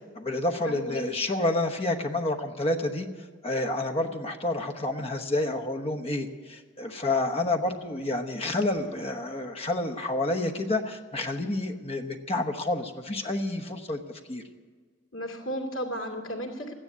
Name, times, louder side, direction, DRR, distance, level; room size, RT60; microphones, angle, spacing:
voice 1, 0.1-3.1 3.4-14.0 14.3-14.4, left 2 dB, 30° left, 6 dB, 1.0 m, -29 dB
voice 2, 0.7-1.0 15.1-16.7, equal, 80° left, 0 dB, 2.5 m, -34 dB
14.0 x 10.0 x 9.2 m, 1.5 s
head